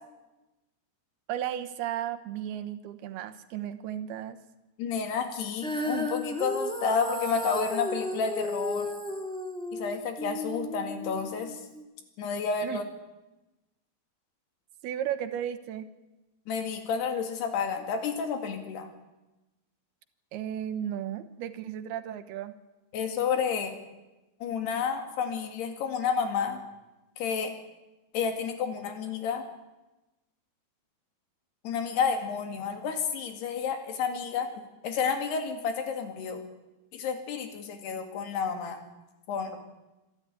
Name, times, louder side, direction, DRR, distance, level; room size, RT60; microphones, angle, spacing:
voice 1, 1.3-4.4 12.6-12.8 14.8-15.9 20.3-22.5, right 10 dB, 80° right, 11 dB, 3.1 m, -34 dB
voice 2, 4.8-8.9 9.7-11.6 12.2-12.8 16.5-18.9 22.9-23.8 24.4-26.6 27.2-27.5 28.1-29.4 31.6-34.5 34.8-36.4 36.9-38.8 39.3-39.5, left 6 dB, 85° left, 6 dB, 4.3 m, -30 dB
Female singing, 5.6-11.8, equal, 5° left, 0.4 m, -34 dB
26.5 x 12.5 x 9.9 m, 1.1 s
omnidirectional pair, 4.6 m